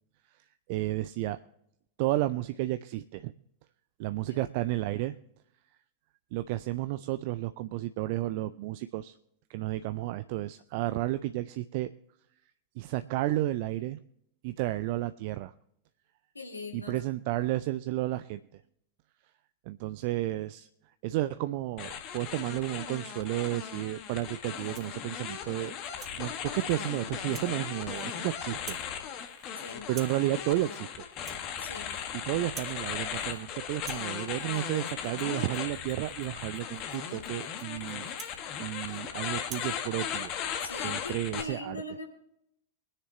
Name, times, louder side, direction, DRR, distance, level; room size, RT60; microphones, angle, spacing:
voice 1, 0.7-1.4 2.0-3.3 4.0-5.2 6.3-9.1 9.5-11.9 12.8-14.0 14.4-15.5 16.7-18.6 19.7-20.7 21.0-25.7 26.2-28.8 29.3-31.1 32.1-38.1 38.6-40.3 40.8-41.8, right 16 dB, 50° right, 12 dB, 0.4 m, -32 dB
voice 2, 16.3-17.0 29.6-29.9 31.6-31.9 40.6-42.0, left 2 dB, 80° left, 1 dB, 2.3 m, -41 dB
sound 1, 21.8-41.4, left 8 dB, 40° left, 1.6 m, -37 dB
Rattle (instrument), 24.5-25.0 25.5-26.2 26.7-26.9 27.3-27.5 27.8-28.3 28.5-28.9 29.2-29.5 29.9-30.2 30.6-30.8 31.1-32.1 32.4-32.8 33.1-33.4 33.7-39.0 39.4-39.7, right 7 dB, 25° right, 1.4 m, -49 dB
22.5 x 9.9 x 3.0 m, 0.77 s
figure-of-eight pair, 90°, 0 cm